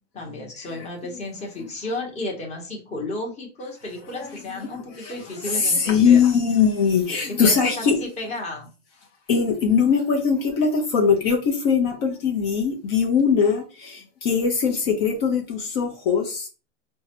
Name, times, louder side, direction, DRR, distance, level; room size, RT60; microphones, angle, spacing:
voice 1, 0.1-6.2 7.3-8.7, left 2 dB, 20° left, 1.1 m, -33 dB
voice 2, 5.5-8.0 9.3-16.5, left 6 dB, 50° left, 0.8 m, -21 dB
4.5 x 2.2 x 2.9 m
hypercardioid pair, 130°, 36 cm